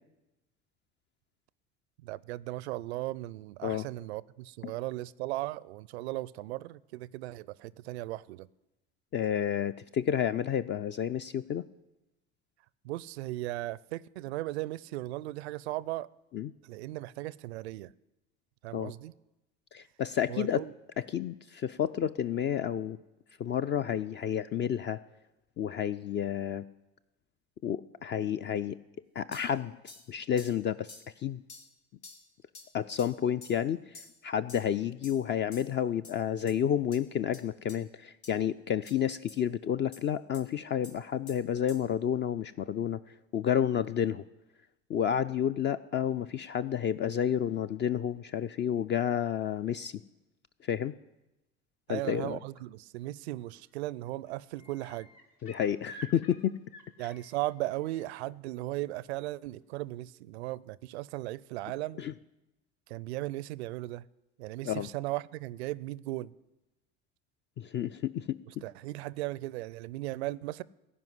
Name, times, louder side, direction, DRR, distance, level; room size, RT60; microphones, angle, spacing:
voice 1, 2.0-8.5 12.8-16.1 16.6-17.9 18.6-19.1 20.3-20.7 51.9-55.1 57.0-62.0 62.9-64.0 64.4-66.3 68.5-70.6, right 17 dB, 80° right, 0.5 m, -37 dB
voice 2, 9.1-11.6 16.3-16.5 18.7-18.9 19.7-20.6 21.1-23.0 23.4-25.0 25.6-26.6 27.6-28.8 29.2-31.0 31.2-31.4 32.7-33.8 34.2-43.0 43.3-44.2 44.9-49.9 50.7-50.9 51.9-52.4 55.4-56.6 57.0-57.1 62.0-62.1 64.6-64.9 67.6-68.6, left 9 dB, 35° left, 0.4 m, -30 dB
sound 1, 29.3-29.5 29.9-30.1 30.4-30.6 30.9-31.1 31.5-31.7 32.0-32.2 32.6-32.7 33.0-33.1 33.4-33.6 34.0-34.2 34.5-34.7 35.0-35.2 35.5-35.7 36.0-36.2 36.5-36.6 36.9-37.0 37.3-37.4 37.7-37.8 38.2-38.3 38.9-39.0 39.3-39.4 39.9-40.0 40.3-40.4 40.8-41.0 41.3-41.4 41.7-41.8, left 3 dB, 85° left, 1.5 m, -49 dB
sound 2, 53.4-53.7 54.0-58.1 59.7-59.8, right 1 dB, 60° left, 1.9 m, -52 dB
15.5 x 5.4 x 9.6 m
hypercardioid pair, 75°, 32 cm